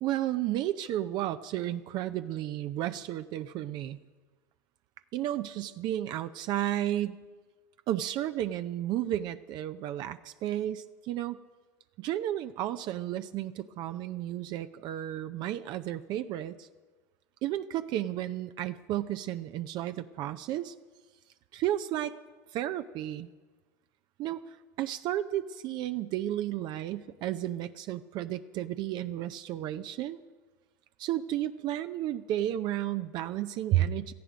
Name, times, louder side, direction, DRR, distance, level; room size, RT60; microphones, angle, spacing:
voice 1, 0.0-4.0 5.1-7.2 7.9-11.4 12.0-16.7 17.4-20.7 21.5-22.1 22.5-23.3 24.2-30.2 31.0-34.1, right 12 dB, 50° right, 10 dB, 0.6 m, -32 dB
17.5 x 14.0 x 5.1 m, 1.3 s
hypercardioid pair, 85°, 9 cm